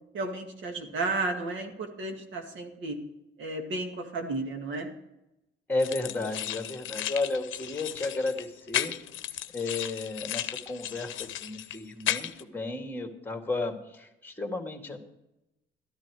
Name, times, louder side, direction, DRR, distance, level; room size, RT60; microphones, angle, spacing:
voice 1, 0.1-3.0 3.4-4.9, right 3 dB, 75° right, 4 dB, 2.1 m, -33 dB
voice 2, 5.7-8.9 9.5-15.0, left 3 dB, 10° left, 4 dB, 2.0 m, -33 dB
sound 1, 5.8-12.4, left 12 dB, 80° left, 0.7 m, -35 dB
13.0 x 10.5 x 4.8 m, 0.91 s
cardioid pair, 90°, 20 cm